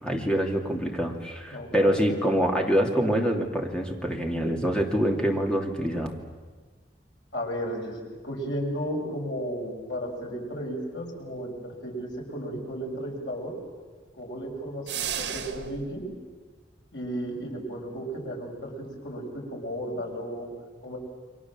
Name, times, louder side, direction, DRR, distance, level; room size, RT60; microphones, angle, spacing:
voice 1, 0.0-6.1, equal, 5° left, 1 dB, 2.9 m, -25 dB
voice 2, 1.5-2.0 7.3-8.0 8.2-13.5 14.2-16.1 16.9-20.5 20.8-21.0, equal, 90° left, 0 dB, 6.9 m, -34 dB
sound 1, 14.9-15.9, right 8 dB, 80° right, 1.9 m, -33 dB
29.5 x 23.0 x 7.6 m, 1.4 s
head